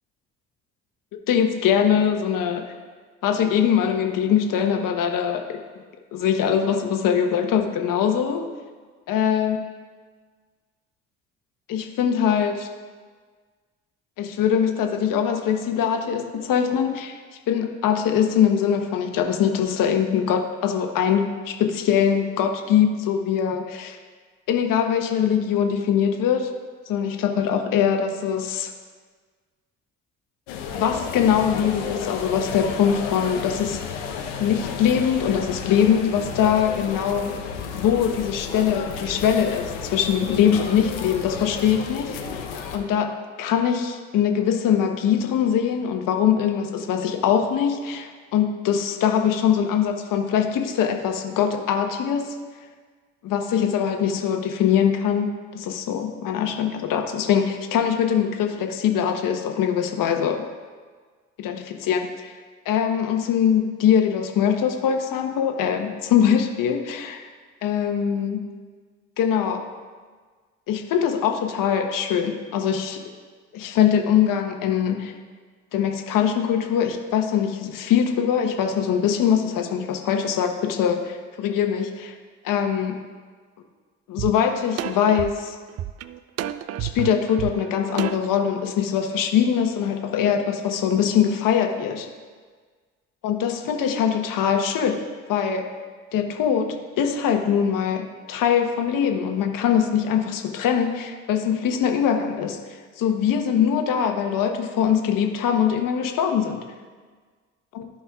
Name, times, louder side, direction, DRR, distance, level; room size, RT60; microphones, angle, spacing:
voice 1, 1.3-2.7 3.2-5.6 6.1-8.4 9.1-9.6 11.7-12.7 14.2-17.2 17.5-24.0 24.5-26.5 26.9-28.7 30.7-33.8 34.4-37.3 37.7-42.2 42.7-43.1 43.4-52.3 53.2-60.4 61.4-62.1 62.6-67.2 67.6-68.4 69.2-69.6 70.7-73.0 73.5-75.1 75.7-82.1 82.4-83.0 84.1-85.6 86.8-92.1 93.2-95.0 95.3-95.6 96.1-106.6, left 8 dB, 60° left, 4 dB, 1.2 m, -22 dB
sound 1, 30.5-42.8, left 7 dB, 85° left, 0.9 m, -32 dB
sound 2, 84.2-84.3 84.8-88.4, right 12 dB, 45° right, 0.4 m, -30 dB
15.0 x 5.4 x 2.4 m, 1.5 s
hypercardioid pair, 60°, 36 cm